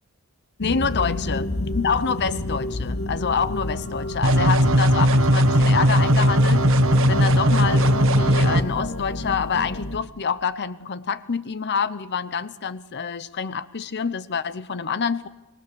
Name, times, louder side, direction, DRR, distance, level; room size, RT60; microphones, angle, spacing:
sound 1, 0.6-10.0, left 1 dB, 70° left, 1.9 m, -31 dB
voice 1, 0.6-1.5 1.7-6.7 7.1-15.3, left 6 dB, 50° left, 14 dB, 0.7 m, -27 dB
sound 2, 4.2-8.6, equal, 65° right, 1.4 m, -18 dB
26.0 x 21.5 x 6.9 m, 1.0 s
head